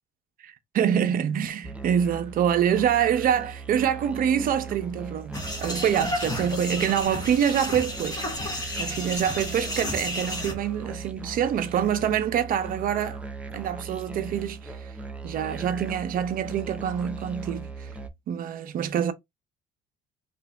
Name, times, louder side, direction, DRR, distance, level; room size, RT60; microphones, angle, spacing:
voice 1, 0.4-13.2 13.5-14.9 15.2-17.9 18.3-19.1, right 9 dB, 55° right, 0.7 m, -26 dB
Musical instrument, 1.6-18.1, right 4 dB, 5° right, 0.5 m, -39 dB
sound 1, 5.3-10.5, left 1 dB, 20° left, 1.3 m, -32 dB
2.9 x 2.7 x 3.4 m
cardioid pair, 110°, 17 cm